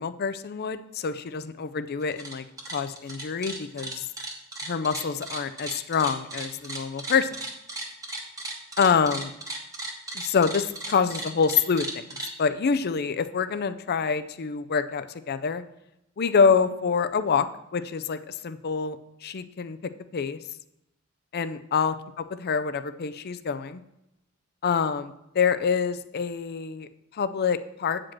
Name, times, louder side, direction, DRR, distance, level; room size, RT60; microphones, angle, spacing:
voice 1, 0.0-4.1 4.6-7.3 8.8-9.3 10.1-12.0 12.4-15.6 16.2-17.5 17.7-19.8 20.1-20.4 21.3-21.9 22.4-23.8 24.6-28.0, left 6 dB, 50° left, 11 dB, 0.5 m, -26 dB
sound 1, 2.0-2.3 2.6-12.3, right 2 dB, 15° right, 1.2 m, -36 dB
8.7 x 5.0 x 5.9 m, 0.85 s
head